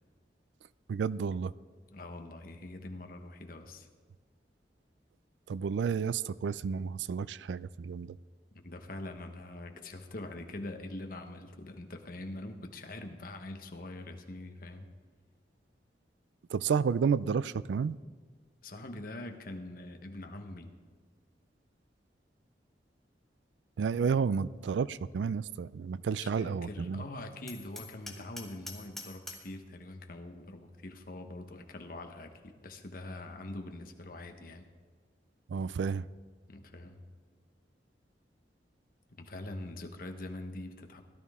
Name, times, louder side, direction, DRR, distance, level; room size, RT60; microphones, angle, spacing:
voice 1, 0.9-1.5 5.5-8.2 16.5-18.0 23.8-27.0 35.5-36.1, right 6 dB, 85° right, 18 dB, 0.3 m, -31 dB
voice 2, 1.9-3.9 8.5-14.9 18.6-20.7 26.1-34.7 36.5-37.0 39.1-41.0, left 2 dB, 55° left, 5 dB, 1.1 m, -43 dB
Hammer, 27.5-29.6, left 2 dB, ahead, 1.4 m, -45 dB
17.0 x 12.0 x 3.6 m, 1.5 s
head